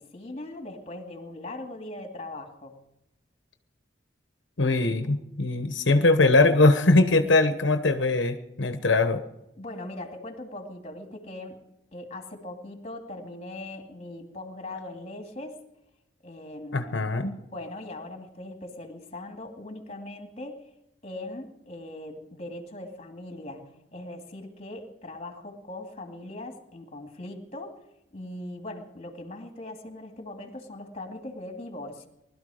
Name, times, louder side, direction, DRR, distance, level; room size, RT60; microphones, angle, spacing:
voice 1, 0.0-2.8 9.6-11.6 11.9-15.6 16.2-20.7 21.0-27.7 28.1-32.1, left 1 dB, 35° left, 4 dB, 2.5 m, -40 dB
voice 2, 4.6-9.2 16.7-17.4, left 2 dB, 90° left, 8 dB, 1.1 m, -21 dB
20.5 x 12.5 x 5.0 m, 0.89 s
head